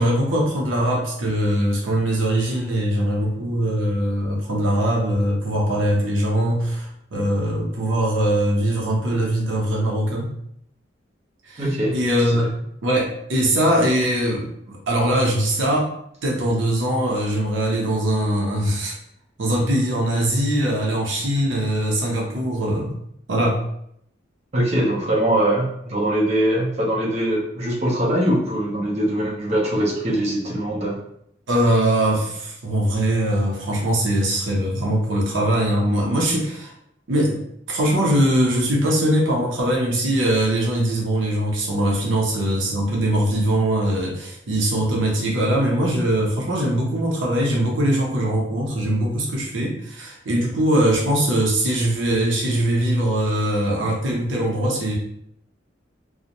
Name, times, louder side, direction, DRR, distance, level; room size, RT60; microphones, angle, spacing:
voice 1, 0.0-10.3 11.5-11.6 11.9-12.4 12.8-15.9 16.2-18.9 19.4-22.9 23.3-23.6 31.5-36.7 37.1-37.4 37.7-55.0, right 1 dB, 80° right, -2 dB, 0.7 m, -21 dB
voice 2, 11.6-12.0 24.5-31.0, right 1 dB, 35° right, -5 dB, 0.6 m, -22 dB
2.5 x 2.0 x 2.9 m, 0.72 s
head